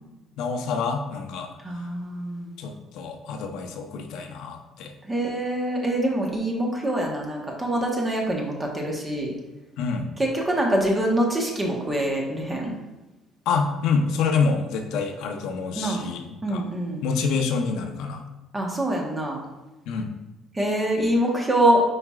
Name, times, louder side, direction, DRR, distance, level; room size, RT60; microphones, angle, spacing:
voice 1, 0.4-1.5 2.6-4.9 9.8-10.1 13.5-16.2 16.5-16.6 17.0-18.2 19.9-20.1, left 5 dB, 85° left, 4 dB, 0.7 m, -27 dB
voice 2, 1.6-2.5 5.0-9.3 10.2-12.7 15.7-16.0 16.4-17.0 18.5-19.4 20.5-21.8, right 1 dB, 15° right, -1 dB, 1.1 m, -25 dB
9.7 x 4.3 x 2.4 m, 1.1 s
cardioid pair, 145°, 0 cm